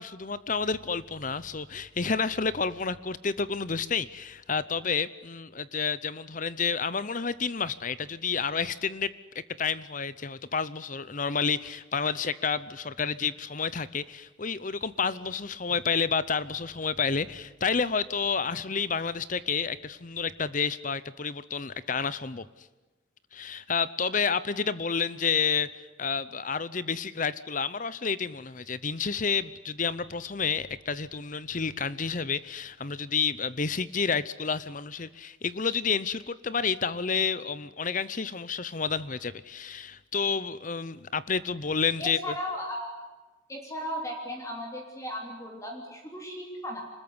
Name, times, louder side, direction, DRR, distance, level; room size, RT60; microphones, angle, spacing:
voice 1, 0.0-9.1 9.6-22.4 23.3-25.7 26.0-42.3, left 5 dB, 40° left, 17 dB, 0.8 m, -30 dB
voice 2, 42.0-42.9 43.5-46.8, equal, 15° left, 2 dB, 3.3 m, -36 dB
26.5 x 21.0 x 9.7 m, 1.2 s
head